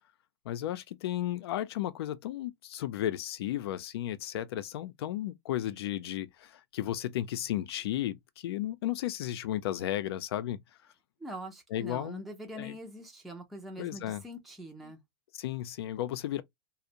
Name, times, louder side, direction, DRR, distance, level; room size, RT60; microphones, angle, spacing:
voice 1, 0.5-10.6 11.7-12.2 12.6-12.7 13.8-14.2 15.4-16.4, left 12 dB, 70° left, 0.4 m, -34 dB
voice 2, 11.2-15.0, equal, ahead, 0.4 m, -43 dB
2.5 x 2.0 x 2.7 m
supercardioid pair, 145°, 13 cm